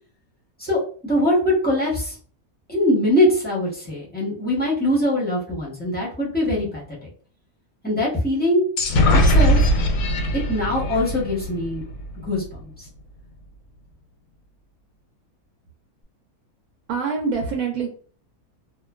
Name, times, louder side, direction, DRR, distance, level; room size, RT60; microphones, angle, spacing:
voice 1, 0.6-2.1 2.7-7.1 7.8-8.6 9.3-9.7 10.5-11.8 12.3-12.8, left 1 dB, 10° left, -7 dB, 0.6 m, -22 dB
sound 1, 8.8-12.4, equal, 85° left, 1.1 m, -20 dB
voice 2, 16.9-17.9, right 5 dB, 75° right, -1 dB, 1.0 m, -25 dB
2.5 x 2.2 x 2.2 m, 0.43 s
omnidirectional pair, 1.6 m